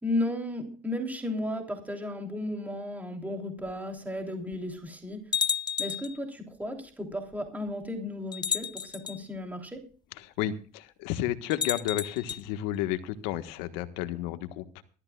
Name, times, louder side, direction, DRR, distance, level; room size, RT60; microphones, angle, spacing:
voice 1, 0.0-5.2 5.8-9.8, left 1 dB, 10° right, 3 dB, 3.3 m, -34 dB
sound 1, 3.7-3.8 4.5-4.6 5.3-6.2 7.3-7.4 8.3-9.2 11.5-12.4, left 7 dB, 20° left, 0.5 m, -31 dB
voice 2, 10.2-14.8, left 13 dB, 80° left, 10 dB, 1.5 m, -32 dB
20.5 x 13.5 x 2.4 m, 0.41 s
supercardioid pair, 105°, 20 cm